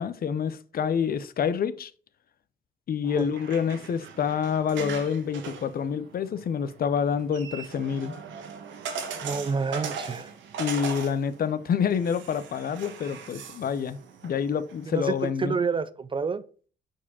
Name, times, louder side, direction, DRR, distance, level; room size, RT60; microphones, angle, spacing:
voice 1, 0.0-1.9 2.9-8.1 10.6-15.5, left 7 dB, 50° left, 0.6 m, -27 dB
sound 1, 3.1-15.3, right 6 dB, 80° right, 1.2 m, -40 dB
voice 2, 9.2-10.3 14.9-16.4, right 5 dB, 25° right, 0.4 m, -29 dB
4.9 x 4.3 x 5.5 m
cardioid pair, 95°, 19 cm